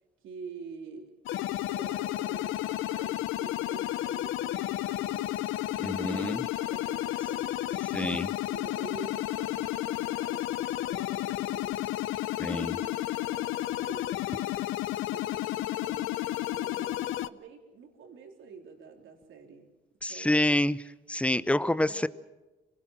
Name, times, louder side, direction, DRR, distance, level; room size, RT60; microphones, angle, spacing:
voice 1, 0.2-1.1 1.7-5.3 5.6-7.9 8.5-11.9 12.5-14.6 15.1-19.7 20.1-20.5 21.3-21.4 21.8-22.1, right 5 dB, 80° right, 2 dB, 3.8 m, -47 dB
sound 1, 1.3-17.3, left 14 dB, 85° left, 0.7 m, -32 dB
voice 2, 5.8-6.4 7.9-8.3 12.4-12.8 20.0-20.8 21.1-22.1, left 1 dB, 5° left, 15 dB, 0.8 m, -27 dB
26.0 x 19.5 x 7.7 m, 1.1 s
cardioid pair, 90°, 20 cm